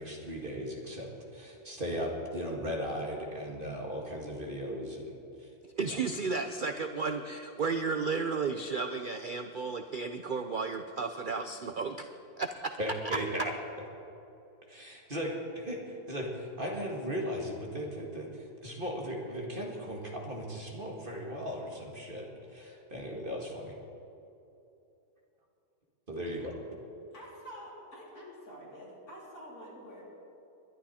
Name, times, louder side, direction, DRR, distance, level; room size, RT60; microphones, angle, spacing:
voice 1, 0.0-5.1 5.4-5.5 5.8-6.0 12.8-13.5 14.7-23.8 26.1-26.5, equal, 35° right, -1 dB, 2.0 m, -37 dB
voice 2, 5.8-12.1 12.4-12.7, right 4 dB, 65° right, 7 dB, 0.5 m, -33 dB
voice 3, 27.1-30.0, equal, 65° left, -5 dB, 4.4 m, -48 dB
21.5 x 11.5 x 4.3 m, 2.8 s
omnidirectional pair, 1.7 m